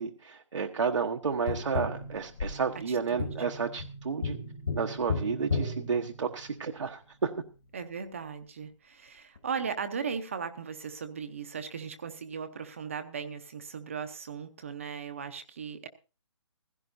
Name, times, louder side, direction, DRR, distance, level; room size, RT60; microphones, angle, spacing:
voice 1, 0.0-4.4 4.7-7.3, right 5 dB, 70° right, 2 dB, 1.2 m, -31 dB
Tap, 1.5-6.8 9.4-9.5, left 3 dB, 45° left, 2.0 m, -35 dB
voice 2, 2.9-3.3 7.7-15.9, right 6 dB, 25° right, 9 dB, 0.8 m, -37 dB
16.0 x 15.5 x 2.7 m, 0.33 s
hypercardioid pair, 175°, 16 cm